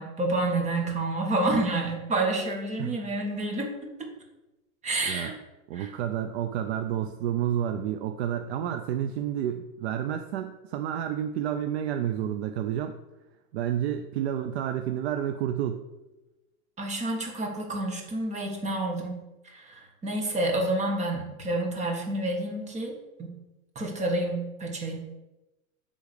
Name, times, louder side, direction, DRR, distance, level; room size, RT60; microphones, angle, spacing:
voice 1, 0.0-4.1 4.8-5.4 5.7-5.9 16.8-23.3 23.7-25.0, right 2 dB, 15° right, 1 dB, 1.7 m, -29 dB
voice 2, 5.7-12.9 13.5-15.8, right 10 dB, 50° right, 7 dB, 0.6 m, -30 dB
8.2 x 3.9 x 6.8 m, 1.0 s
hypercardioid pair, 130°, 43 cm